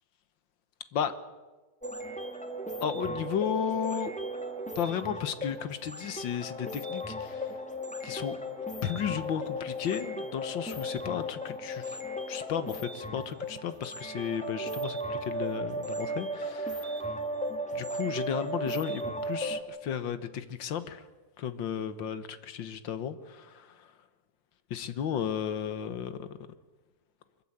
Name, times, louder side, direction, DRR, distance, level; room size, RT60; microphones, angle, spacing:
sound 1, 1.8-19.6, equal, 5° left, 1.9 m, -36 dB
voice 1, 2.8-4.1 4.8-7.5 8.0-8.4 8.8-12.0 12.3-17.1 17.7-21.0 21.4-23.9 24.7-26.5, left 8 dB, 90° left, 12 dB, 1.9 m, -34 dB
23.5 x 14.5 x 9.7 m, 1.2 s
omnidirectional pair, 2.0 m